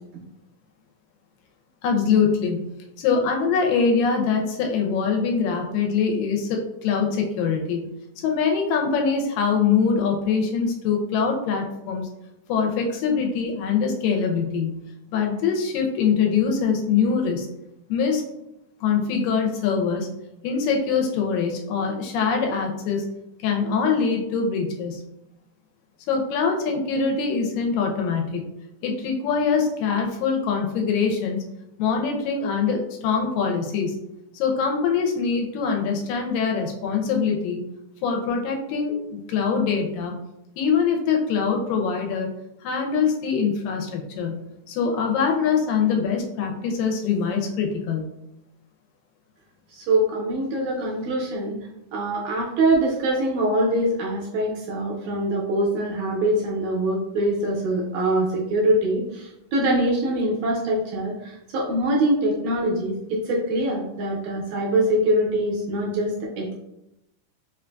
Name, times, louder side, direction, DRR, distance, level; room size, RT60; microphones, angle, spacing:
voice 1, 1.8-2.7 3.0-7.9 8.2-12.1 12.5-14.8 15.1-17.5 17.9-18.2 18.8-20.1 20.4-23.1 23.4-25.0 26.1-28.5 28.8-31.4 31.8-34.0 34.3-37.6 38.0-40.1 40.6-42.3 42.6-48.1, left 5 dB, 90° left, 2 dB, 2.3 m, -23 dB
voice 2, 49.7-51.6 51.9-66.5, right 1 dB, 75° right, -3 dB, 1.9 m, -23 dB
5.1 x 2.5 x 2.2 m, 0.85 s
omnidirectional pair, 3.8 m